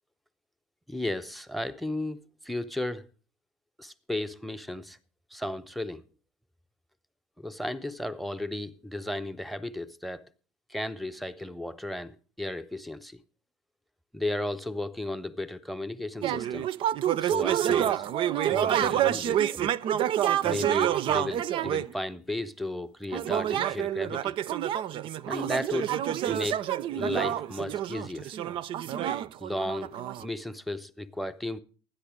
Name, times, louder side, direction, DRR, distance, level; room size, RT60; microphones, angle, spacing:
voice 1, 0.9-3.0 3.8-5.0 5.3-6.0 7.4-10.3 10.7-13.2 14.1-16.7 17.2-18.0 18.5-19.6 20.4-24.4 25.3-26.0 26.3-28.3 29.4-31.6, left 1 dB, ahead, 0.8 m, -34 dB
sound 1, 16.2-21.9 23.1-30.2, right 11 dB, 40° right, 0.5 m, -28 dB
13.0 x 10.0 x 5.0 m
figure-of-eight pair, 70°, 13 cm